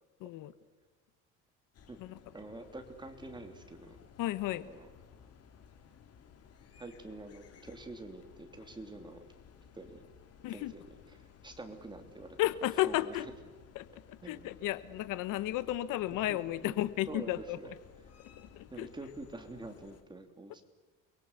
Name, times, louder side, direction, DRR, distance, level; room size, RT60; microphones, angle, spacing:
voice 1, 0.2-0.5 2.0-2.2 4.2-4.7 10.4-10.7 12.4-13.3 13.7-17.6 18.4-18.9, left 14 dB, 75° left, 15 dB, 1.3 m, -33 dB
sound 1, 1.7-20.0, left 7 dB, 50° left, 3.1 m, -58 dB
voice 2, 2.3-4.0 4.5-4.9 6.8-9.2 9.7-10.0 10.5-10.9 11.4-12.4 12.8-13.2 14.2-14.4 16.3-16.4 16.6-16.8 17.1-17.7 18.7-20.6, right 2 dB, 15° right, 6 dB, 3.2 m, -46 dB
29.5 x 22.5 x 8.2 m, 1.3 s
cardioid pair, 130°, 32 cm